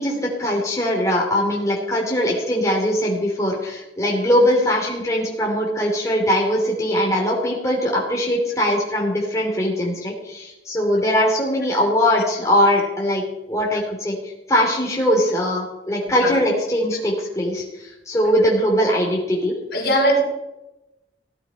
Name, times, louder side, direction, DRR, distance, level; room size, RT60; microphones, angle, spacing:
voice 1, 0.0-14.1 14.5-17.6 18.1-19.5, equal, 15° left, -2 dB, 3.1 m, -21 dB
voice 2, 19.7-20.2, right 1 dB, 55° left, 1 dB, 3.4 m, -19 dB
16.5 x 11.0 x 5.3 m, 0.96 s
head